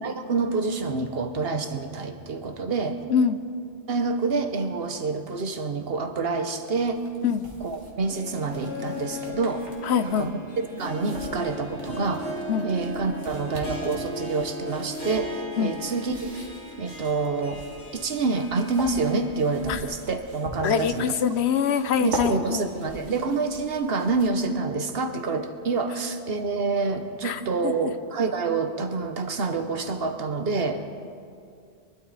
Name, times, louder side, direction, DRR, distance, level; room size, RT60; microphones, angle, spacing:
voice 1, 0.0-3.0 3.9-7.0 7.6-9.7 10.0-12.3 12.6-16.3 16.8-17.6 17.9-21.1 22.0-30.8, right 4 dB, 60° right, 7 dB, 1.1 m, -27 dB
sound 1, 6.8-24.6, right 1 dB, 75° right, 2.2 m, -42 dB
Harp, 7.8-20.0 20.3-20.4 21.3-21.4, left 1 dB, 85° left, 2.6 m, -37 dB
voice 2, 9.8-10.3 12.5-12.7 15.6-15.8 19.7-19.8 20.6-22.6 27.2-27.7, left 7 dB, 70° left, 11 dB, 0.9 m, -24 dB
23.5 x 12.5 x 4.1 m, 2.3 s
omnidirectional pair, 1.2 m